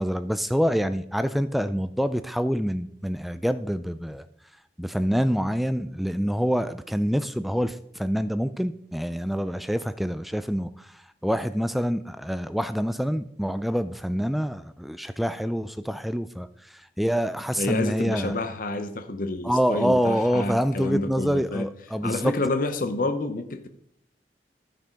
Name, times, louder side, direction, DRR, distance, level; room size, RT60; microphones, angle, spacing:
voice 1, 0.0-4.2 4.8-10.9 11.2-16.5 17.0-18.3 19.4-22.3, equal, ahead, 0.3 m, -26 dB
voice 2, 17.6-21.7 22.0-23.7, left 2 dB, 50° left, 0.8 m, -28 dB
12.5 x 5.6 x 5.1 m
head